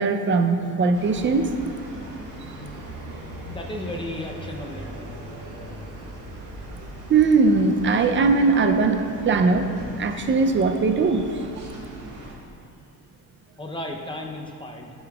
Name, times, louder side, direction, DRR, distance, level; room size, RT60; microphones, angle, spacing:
voice 1, 0.0-1.5 7.1-11.2, right 4 dB, 30° right, 6 dB, 0.5 m, -20 dB
sound 1, 0.9-12.3, right 1 dB, 50° right, 1.5 m, -39 dB
voice 2, 3.2-5.1 13.6-14.9, left 1 dB, 15° left, 0 dB, 0.7 m, -34 dB
11.5 x 5.2 x 2.4 m, 2.3 s
cardioid pair, 100°, 39 cm